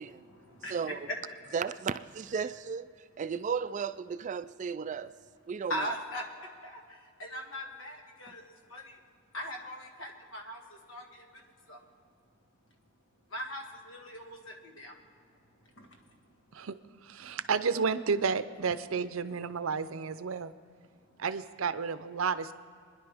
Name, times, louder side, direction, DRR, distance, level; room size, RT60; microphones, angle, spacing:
voice 1, 0.0-1.8 2.3-2.6 3.1-3.4 5.6-16.7 17.2-17.4 20.8-21.3, equal, 70° left, 1.7 m, -42 dB
voice 2, 1.5-2.9 3.2-5.1 5.5-5.7, right 6 dB, 35° right, 0.3 m, -34 dB
voice 3, 17.0-20.5 21.2-22.5, right 5 dB, 80° right, 0.6 m, -31 dB
26.5 x 10.5 x 3.5 m
head